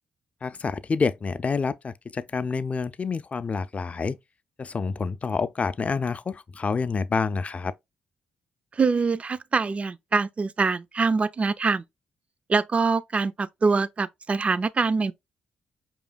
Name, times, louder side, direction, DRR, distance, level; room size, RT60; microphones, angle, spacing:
voice 1, 0.4-4.2 4.6-7.7, left 4 dB, 35° left, 0.4 m, -28 dB
voice 2, 8.8-11.8 12.5-15.1, right 4 dB, 35° right, 0.4 m, -24 dB
4.9 x 3.0 x 2.3 m
supercardioid pair, 60°, 4 cm